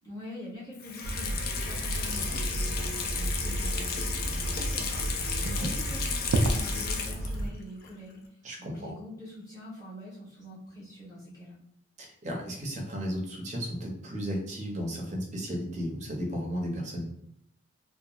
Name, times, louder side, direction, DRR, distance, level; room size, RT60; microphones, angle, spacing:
voice 1, 0.0-11.6, left 1 dB, 20° left, -9 dB, 1.0 m, -45 dB
Water tap faucet / Sink (filling or washing), 0.7-7.5 7.8-7.9, left 5 dB, 50° left, 0.3 m, -34 dB
sound 1, 1.0-7.5, right 1 dB, 85° right, 0.3 m, -32 dB
voice 2, 8.4-8.9 12.0-17.1, equal, 35° right, 0 dB, 0.5 m, -34 dB
2.9 x 2.1 x 2.3 m, 0.74 s
head